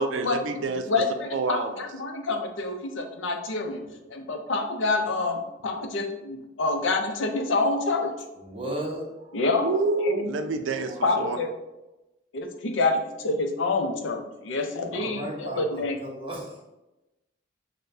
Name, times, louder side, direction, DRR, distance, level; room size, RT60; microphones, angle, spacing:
voice 1, 0.0-0.9 1.3-1.9 9.6-11.4, right 3 dB, 85° right, 6 dB, 0.4 m, -27 dB
voice 2, 0.9-3.8 4.1-8.1 9.3-9.7 10.0-10.3 11.0-11.5 12.3-15.9, left 3 dB, 85° left, 5 dB, 0.5 m, -27 dB
voice 3, 8.3-9.4 10.9-11.0 14.9-16.6, right 1 dB, 30° right, -1 dB, 0.8 m, -35 dB
6.4 x 2.2 x 2.6 m, 1.0 s
head